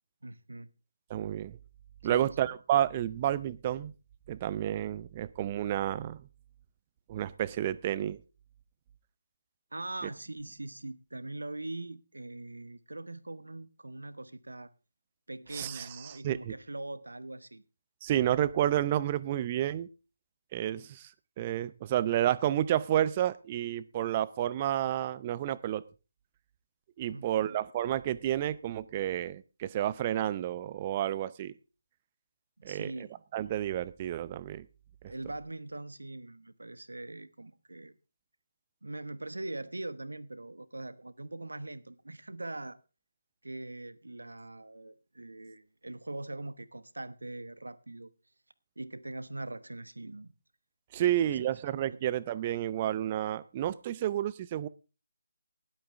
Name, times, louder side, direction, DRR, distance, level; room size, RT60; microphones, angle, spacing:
voice 1, 0.2-0.7 2.0-2.3 9.7-14.7 15.3-17.6 27.1-27.6 32.6-33.1 35.1-37.9 38.8-42.8 43.4-48.1 48.8-50.3 51.0-51.5 51.9-52.0, right 2 dB, 75° right, 1.1 m, -42 dB
voice 2, 1.1-1.6 2.0-3.9 4.3-6.2 7.1-8.2 15.5-16.5 18.0-19.9 20.5-21.1 21.4-25.8 27.0-31.5 32.6-32.9 33.3-34.7 50.9-54.7, right 12 dB, 25° right, 0.6 m, -30 dB
19.0 x 8.6 x 3.6 m
figure-of-eight pair, 155°, 0 cm